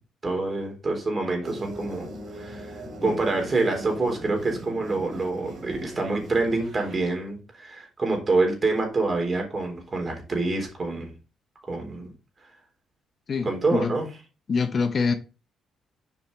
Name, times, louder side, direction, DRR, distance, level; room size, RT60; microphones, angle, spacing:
voice 1, 0.2-2.1 2.3-11.1 11.7-12.1 13.4-14.1, right 3 dB, 35° right, 3.5 m, -26 dB
sound 1, 1.4-7.0, right 1 dB, 60° right, 3.0 m, -40 dB
voice 2, 13.3-13.9 14.5-15.1, left 5 dB, 45° left, 0.9 m, -25 dB
7.2 x 5.2 x 3.9 m
cardioid pair, 90°, 0 cm